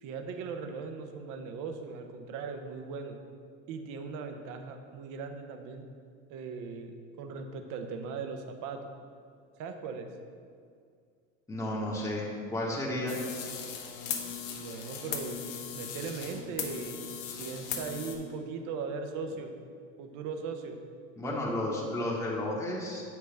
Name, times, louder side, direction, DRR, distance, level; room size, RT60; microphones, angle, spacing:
voice 1, 0.0-3.2 3.7-5.8 6.3-8.8 9.6-10.1 14.5-19.5 20.0-20.8, right 5 dB, 50° right, 6 dB, 0.9 m, -39 dB
voice 2, 11.5-12.2 12.5-13.1 21.2-23.0, left 1 dB, 10° left, -5 dB, 1.1 m, -32 dB
sound 1, 13.1-18.2, left 7 dB, 60° left, 1.1 m, -38 dB
7.4 x 6.0 x 3.4 m, 2.2 s
hypercardioid pair, 95°, 39 cm